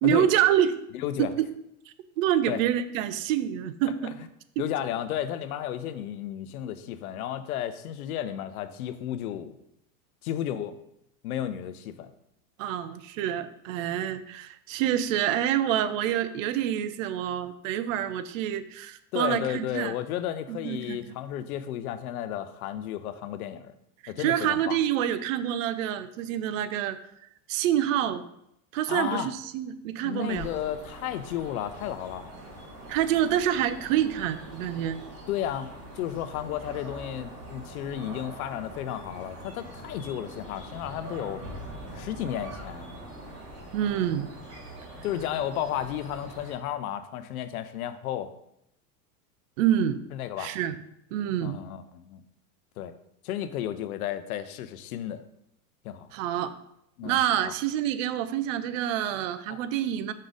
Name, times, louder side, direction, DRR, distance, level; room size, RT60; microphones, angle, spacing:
voice 1, 0.0-0.7 1.2-1.5 2.2-4.1 4.6-4.7 12.6-19.9 20.5-21.0 24.0-27.0 27.5-28.2 28.7-30.5 32.9-35.0 43.7-44.3 49.6-50.0 50.4-50.8 51.1-51.6 56.1-56.6 57.0-60.1, right 11 dB, 60° right, 13 dB, 0.6 m, -27 dB
voice 2, 0.9-1.3 2.5-2.6 4.0-4.1 4.6-9.6 10.2-10.8 11.2-12.1 19.1-23.7 24.1-24.8 28.9-29.3 30.0-32.3 35.3-35.7 36.0-41.4 41.9-42.9 45.0-48.3 50.1-50.5 51.4-52.2 52.8-52.9 53.2-55.2 55.8-56.1 57.0-57.5 59.5-59.6, left 11 dB, 70° left, 12 dB, 0.7 m, -33 dB
sound 1, 30.3-46.5, right 1 dB, 35° right, 2.6 m, -43 dB
5.4 x 3.9 x 5.0 m, 0.78 s
hypercardioid pair, 120°, 45 cm